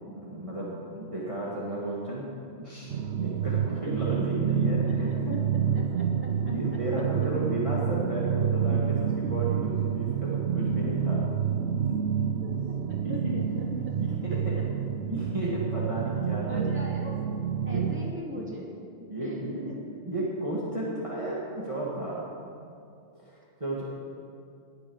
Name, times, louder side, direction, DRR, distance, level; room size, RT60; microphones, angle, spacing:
voice 1, 0.1-2.3 2.6-2.9 3.2-5.4 6.5-11.2 12.2-12.3 13.0-13.6 14.0-14.6 15.1-16.7 17.6-17.8 19.1-22.3 23.2-23.8, right 1 dB, 30° right, -7 dB, 2.0 m, -33 dB
sound 1, 2.9-18.1, right 7 dB, 70° right, 0.8 m, -28 dB
voice 2, 4.7-5.4 5.7-6.8 12.4-13.9 14.6-14.7 16.5-17.2 17.7-18.7 19.0-19.8 23.3-23.5, equal, 10° right, -3 dB, 2.5 m, -42 dB
19.5 x 8.2 x 6.3 m, 2.5 s
omnidirectional pair, 1.2 m